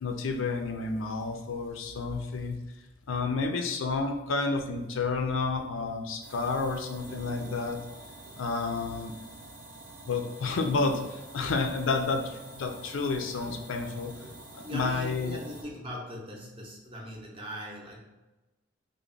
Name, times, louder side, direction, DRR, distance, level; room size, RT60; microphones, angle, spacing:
voice 1, 0.0-2.6 3.1-7.8 8.4-9.1 10.1-14.1 14.5-15.4, left 3 dB, 70° left, 4 dB, 0.4 m, -30 dB
sound 1, 6.2-15.6, right 2 dB, 65° right, 0.7 m, -47 dB
voice 2, 14.6-18.0, equal, 25° right, -1 dB, 0.6 m, -40 dB
3.4 x 2.1 x 3.8 m, 1.1 s
head